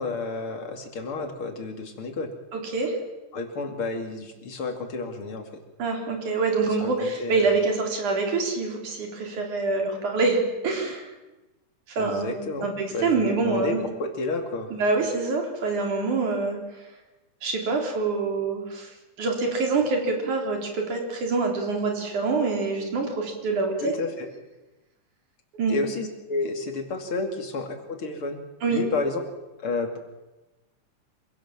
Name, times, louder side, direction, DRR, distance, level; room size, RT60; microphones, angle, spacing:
voice 1, 0.0-2.3 3.3-5.4 6.8-7.6 12.0-14.7 23.8-24.3 25.7-28.4 28.7-29.2 29.6-30.0, left 3 dB, 45° left, 4 dB, 3.2 m, -31 dB
voice 2, 2.5-2.9 5.8-11.1 12.0-13.8 14.7-16.6 17.4-18.9 19.2-23.9 25.6-25.8 28.6-28.8, right 3 dB, 80° right, 2 dB, 5.1 m, -25 dB
26.5 x 17.0 x 7.5 m, 1.1 s
omnidirectional pair, 3.4 m